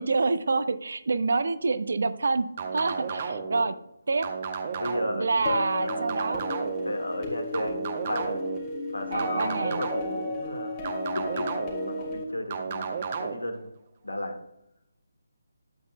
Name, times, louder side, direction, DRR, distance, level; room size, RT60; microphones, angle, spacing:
voice 1, 0.0-2.5 2.7-3.7 4.1-4.3 5.2-6.4 9.1-9.8, right 3 dB, 55° right, 12 dB, 0.6 m, -27 dB
sound 1, 2.6-3.6 4.2-5.3 5.9-6.9 7.5-8.6 9.2-10.2 10.8-11.9 12.5-13.3, right 5 dB, 35° right, 1.0 m, -33 dB
voice 2, 3.3-3.7 4.8-6.0 6.8-8.4 8.9-10.7 11.1-11.6 11.8-12.9 13.2-13.7 14.0-14.4, left 1 dB, 80° left, 5 dB, 1.7 m, -34 dB
sound 2, 5.5-12.2, left 2 dB, 20° left, 2.5 m, -34 dB
12.0 x 8.0 x 2.2 m, 0.80 s
figure-of-eight pair, 150°, 0 cm